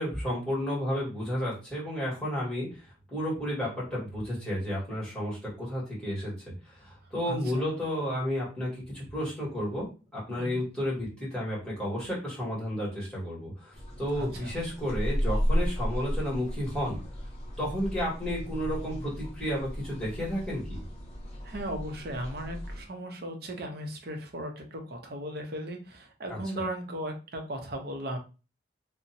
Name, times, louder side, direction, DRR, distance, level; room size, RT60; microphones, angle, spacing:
voice 1, 0.0-2.8 3.1-17.0 17.6-20.8 26.3-26.4, equal, 5° left, -7 dB, 1.5 m, -32 dB
voice 2, 7.2-7.6 10.4-10.6 14.1-14.5 17.6-17.8 21.4-28.2, right 1 dB, 55° right, 3 dB, 0.6 m, -37 dB
sound 1, 13.7-22.8, equal, 35° left, 0.6 m, -34 dB
2.8 x 2.1 x 2.6 m, 0.31 s
head